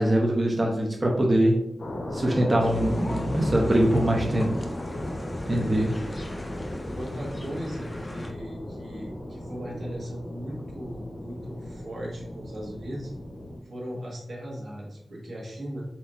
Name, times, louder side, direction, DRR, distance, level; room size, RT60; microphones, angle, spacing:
voice 1, 0.0-1.6 2.1-4.4 5.5-5.9, right 1 dB, 30° right, -1 dB, 0.6 m, -23 dB
sound 1, 1.8-13.6, left 1 dB, 65° left, 0.9 m, -37 dB
voice 2, 2.2-2.7 5.5-5.9 6.9-13.1 13.6-15.8, equal, 70° right, -3 dB, 1.5 m, -37 dB
sound 2, 2.6-8.3, left 1 dB, 20° left, 0.6 m, -35 dB
4.3 x 4.3 x 2.5 m, 0.82 s
wide cardioid pair, 90°, 0 cm